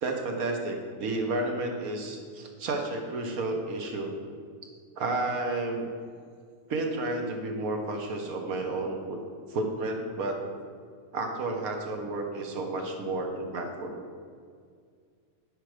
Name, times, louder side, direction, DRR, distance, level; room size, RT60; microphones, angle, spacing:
voice 1, 0.0-4.1 5.0-5.9 6.7-9.2 9.5-10.4 11.1-14.0, right 2 dB, 80° right, 3 dB, 1.5 m, -31 dB
9.7 x 5.0 x 5.0 m, 2.1 s
omnidirectional pair, 1.5 m